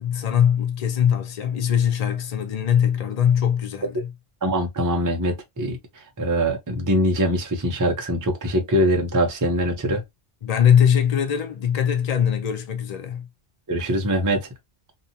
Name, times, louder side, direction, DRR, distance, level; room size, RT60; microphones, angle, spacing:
voice 1, 0.0-4.1 10.4-13.3, left 8 dB, 50° left, 0.5 m, -21 dB
voice 2, 4.4-5.8 6.2-10.0 13.7-14.5, equal, 25° right, 0.5 m, -23 dB
2.6 x 2.3 x 2.6 m
omnidirectional pair, 1.1 m